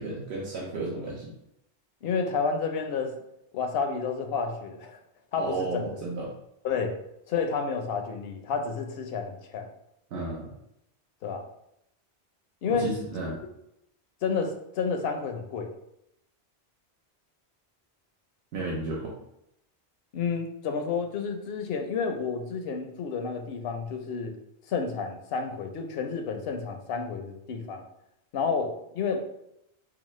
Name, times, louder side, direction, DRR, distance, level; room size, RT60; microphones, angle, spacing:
voice 1, 0.0-1.4 5.4-6.3 10.1-10.5 12.6-13.4 18.5-19.1, right 2 dB, 85° right, -5 dB, 1.0 m, -33 dB
voice 2, 2.0-3.1 3.5-5.0 5.3-5.9 6.6-7.0 7.3-9.7 11.2-11.5 12.6-12.9 14.2-15.7 20.1-24.3 24.7-27.9 28.3-29.2, left 5 dB, 70° left, 4 dB, 0.7 m, -30 dB
4.6 x 2.0 x 3.0 m, 0.80 s
omnidirectional pair, 1.1 m